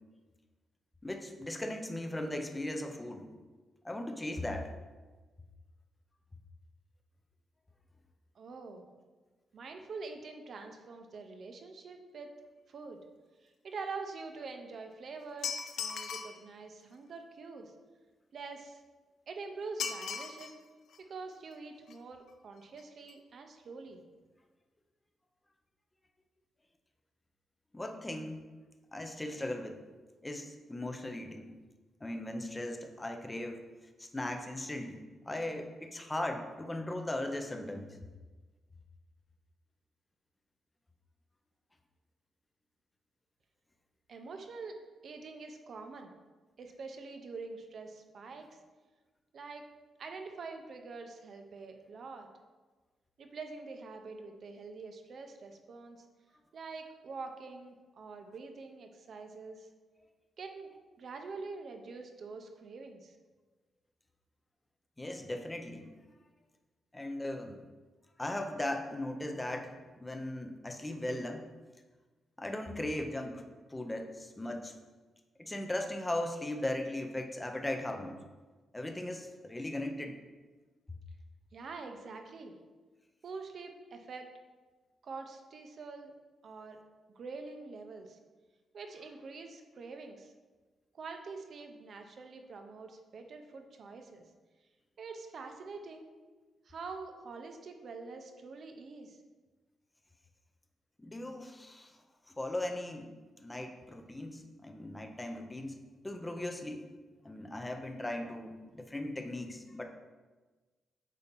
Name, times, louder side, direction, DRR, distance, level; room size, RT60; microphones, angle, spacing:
voice 1, 1.0-3.3 3.8-4.7 27.7-28.4 28.9-29.8 30.2-31.5 32.0-33.6 34.0-38.0 65.0-65.9 66.9-67.6 68.2-71.4 72.4-73.4 73.7-74.7 75.4-78.2 78.7-80.2 101.0-102.0 102.4-103.1 103.4-105.8 106.0-106.9 107.2-109.8, left 1 dB, 10° left, 4 dB, 0.5 m, -38 dB
voice 2, 8.3-8.9 9.5-12.3 12.7-13.0 13.4-17.7 18.3-18.8 19.3-20.6 21.0-24.0 44.1-46.1 46.6-48.6 49.3-49.7 50.0-52.3 53.2-56.1 56.5-59.7 60.4-63.2 81.5-82.6 83.2-84.3 85.0-86.1 86.4-86.8 87.2-88.2 88.7-90.3 90.9-94.2 95.0-96.1 96.6-99.2, right 4 dB, 45° right, 5 dB, 0.7 m, -45 dB
sound 1, 15.4-16.4 19.8-20.5 20.9-21.0 21.9-22.0 22.3-22.4 22.6-22.8 23.1-23.2, left 6 dB, 65° left, 0.5 m, -38 dB
8.2 x 2.8 x 5.2 m, 1.3 s
wide cardioid pair, 165°, 0 cm